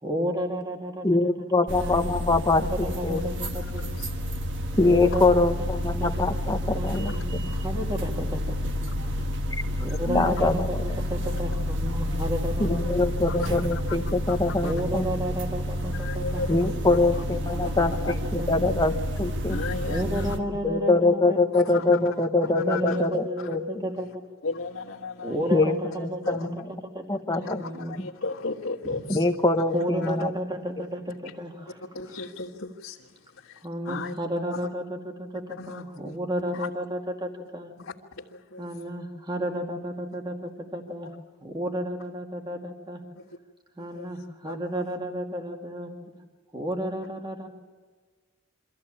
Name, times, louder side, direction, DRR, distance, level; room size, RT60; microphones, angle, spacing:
voice 1, 0.0-1.1 1.8-3.9 4.8-5.5 6.0-6.1 6.8-8.9 9.8-13.1 13.5-13.6 14.6-17.9 18.4-18.5 19.8-21.4 21.7-24.2 25.2-28.0 28.8-29.0 29.7-31.8 33.6-37.7 38.6-41.1 41.4-43.0 43.8-45.9 46.5-47.5, equal, 20° right, 2 dB, 2.2 m, -32 dB
voice 2, 1.0-3.2 4.8-7.4 9.5-9.6 10.1-10.8 12.6-15.1 16.5-19.6 20.6-23.8 25.5-26.7 27.1-27.6 27.9-28.1 29.1-30.3, left 2 dB, 20° left, 7 dB, 1.0 m, -24 dB
sound 1, 1.7-20.4, equal, 60° right, 1.4 m, -30 dB
voice 3, 3.4-4.1 6.9-7.2 9.0-9.2 9.7-10.3 13.3-14.0 14.3-14.4 14.6-14.7 15.9-16.7 17.0-17.2 17.6-18.1 19.5-20.3 21.5-22.0 22.5-23.1 23.4-23.6 24.4-25.5 26.2-26.5 27.4-29.3 30.0-30.1 31.9-34.2 34.5-34.6 35.6-36.2 36.5-36.7 37.8-38.6 43.1-43.2 43.8-44.1 44.4-44.8, left 3 dB, 75° left, -6 dB, 1.7 m, -36 dB
25.0 x 14.5 x 8.8 m, 1.4 s
head